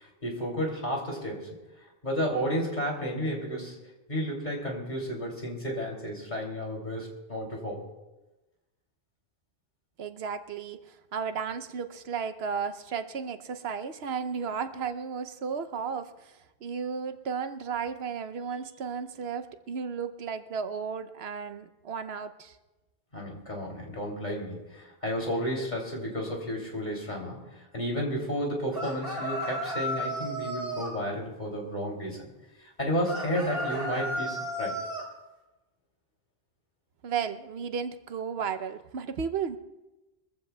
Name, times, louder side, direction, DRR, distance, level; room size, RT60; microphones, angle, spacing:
voice 1, 0.0-1.6 2.0-3.8 4.1-7.9 23.1-32.3 32.6-34.8, equal, 45° left, -1 dB, 3.0 m, -32 dB
voice 2, 10.0-22.6 37.0-39.6, right 6 dB, 85° right, 11 dB, 1.0 m, -34 dB
sound 1, 28.7-30.9 33.0-35.1, equal, 40° right, 4.2 m, -33 dB
23.0 x 15.0 x 2.2 m, 1.1 s
omnidirectional pair, 1.0 m